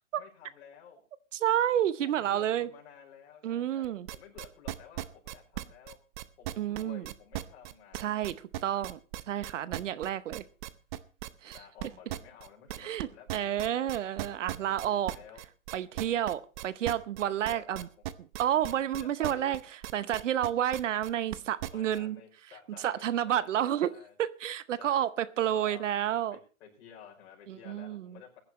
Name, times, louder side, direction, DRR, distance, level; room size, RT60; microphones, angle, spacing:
voice 1, 0.2-1.0 2.0-6.0 6.4-8.2 11.5-13.6 14.6-15.4 17.3-18.0 18.9-19.6 21.7-24.2 24.8-25.0 25.4-25.9 26.3-28.4, left 8 dB, 55° left, 5.3 m, -53 dB
voice 2, 1.3-2.7 3.4-4.1 6.6-7.0 7.9-8.4 8.6-9.0 9.3-10.4 11.4-11.6 12.8-15.1 15.7-17.9 18.4-19.6 19.9-22.2 22.8-23.9 24.2-26.4 27.5-28.2, right 11 dB, 65° right, 0.9 m, -30 dB
sound 1, 3.8-22.0, right 15 dB, 35° right, 0.8 m, -38 dB
20.5 x 10.5 x 3.1 m
hypercardioid pair, 130°, 41 cm